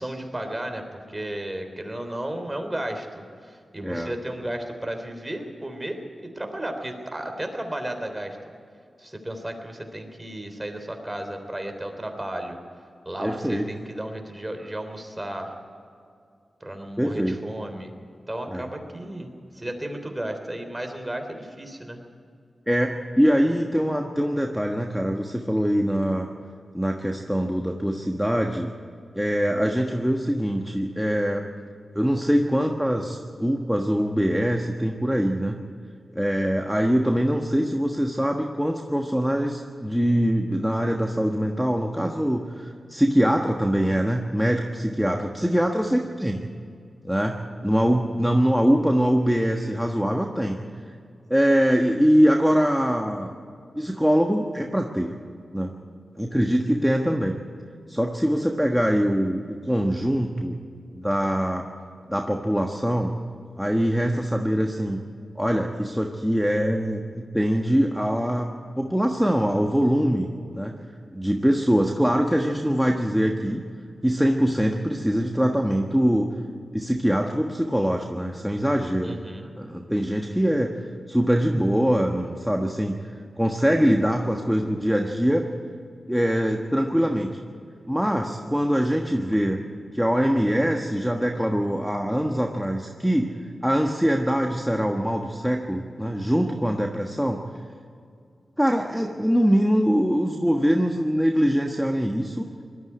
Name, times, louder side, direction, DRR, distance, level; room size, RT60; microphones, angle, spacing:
voice 1, 0.0-8.4 9.0-12.6 13.1-15.5 16.6-17.9 18.3-22.0 79.0-79.5, right 1 dB, 20° right, 5 dB, 3.5 m, -34 dB
voice 2, 3.8-4.1 13.2-13.6 17.0-17.4 18.5-18.7 22.7-26.3 26.7-28.7 29.1-31.4 31.9-35.6 36.1-46.4 47.0-50.6 51.3-53.3 53.7-55.1 55.5-55.7 56.2-57.4 57.9-60.5 60.9-61.6 62.1-63.1 63.6-65.0 65.4-70.7 71.1-73.6 74.0-76.3 76.7-79.1 79.6-80.7 81.1-83.0 83.4-85.5 86.1-87.3 87.9-89.6 89.9-93.3 93.6-97.4 98.6-102.5, equal, ahead, 2 dB, 1.4 m, -23 dB
20.0 x 13.5 x 9.7 m, 2.3 s
cardioid pair, 50°, 0 cm